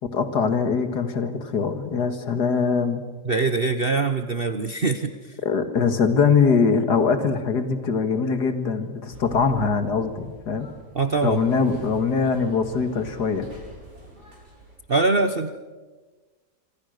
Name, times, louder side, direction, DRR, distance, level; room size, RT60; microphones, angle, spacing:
voice 1, 0.0-3.0 5.4-10.7 11.2-13.5, left 5 dB, 80° left, 9 dB, 2.4 m, -22 dB
voice 2, 3.2-5.3 10.9-11.4 14.9-15.5, right 3 dB, 40° right, 8 dB, 1.2 m, -23 dB
sound 1, 9.1-14.8, equal, 85° right, 8.4 m, -45 dB
26.5 x 26.0 x 6.6 m, 1.3 s
omnidirectional pair, 1.7 m